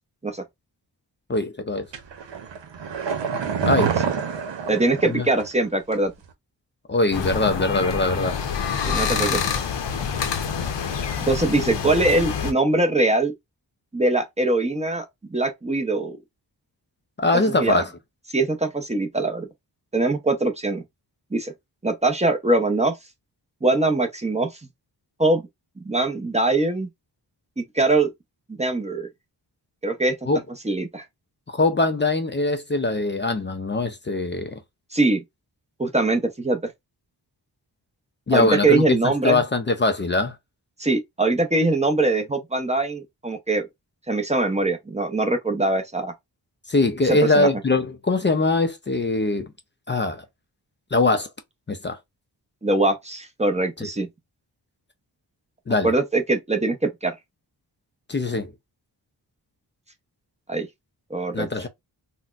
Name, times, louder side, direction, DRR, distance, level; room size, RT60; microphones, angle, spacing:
voice 1, 1.3-1.9 3.7-4.0 5.0-5.3 6.9-8.4 17.2-17.9 30.3-30.4 31.5-34.6 38.3-40.4 46.7-49.5 49.9-50.2 50.9-51.3 51.7-52.0 53.8-53.9 55.7-55.9 58.1-58.5 61.3-61.7, left 2 dB, 30° left, 0.4 m, -22 dB
sound 1, 1.9-5.6 5.9-6.0, right 6 dB, 90° right, 0.8 m, -27 dB
voice 2, 4.7-6.1 8.8-9.4 11.2-13.3 13.9-16.2 17.5-17.8 18.3-19.5 19.9-20.8 21.3-21.5 21.8-22.9 23.6-24.5 25.2-25.4 25.8-26.9 27.6-28.1 28.5-29.1 29.8-30.1 30.6-31.0 34.9-35.2 35.8-36.7 38.3-39.4 40.8-43.7 44.1-46.1 47.1-47.5 52.6-54.1 55.8-57.1 60.5-60.7 61.1-61.5, right 2 dB, 15° right, 0.6 m, -22 dB
sound 2, 7.1-12.5, left 7 dB, 80° left, 0.7 m, -26 dB
4.0 x 2.1 x 2.4 m
wide cardioid pair, 150°, 42 cm